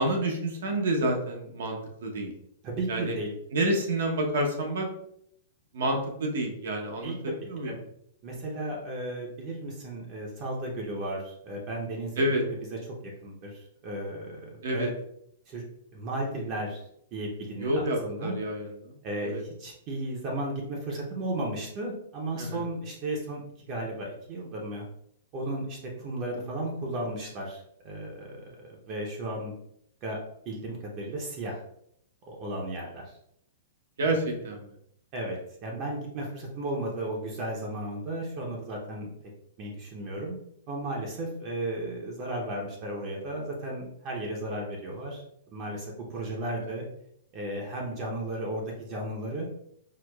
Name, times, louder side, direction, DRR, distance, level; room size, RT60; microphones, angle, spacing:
voice 1, 0.0-2.3 2.9-3.2 3.5-4.9 5.7-7.1 7.5-7.7 12.2-12.4 14.6-14.9 17.6-18.9 19.2-19.4 22.4-22.6 34.0-34.6 46.6-46.7, right 1 dB, 75° right, 2 dB, 0.8 m, -28 dB
voice 2, 2.6-3.3 7.0-7.3 7.6-7.8 8.2-14.9 15.5-15.6 15.9-16.8 17.1-18.4 19.0-24.9 25.3-29.5 30.0-30.2 30.5-31.6 32.3-33.1 34.0-34.2 35.1-39.1 39.6-40.4 40.7-45.2 45.5-46.8 47.3-49.5, right 1 dB, 30° right, -1 dB, 0.6 m, -34 dB
4.6 x 2.2 x 2.2 m, 0.72 s
hypercardioid pair, 165°, 0 cm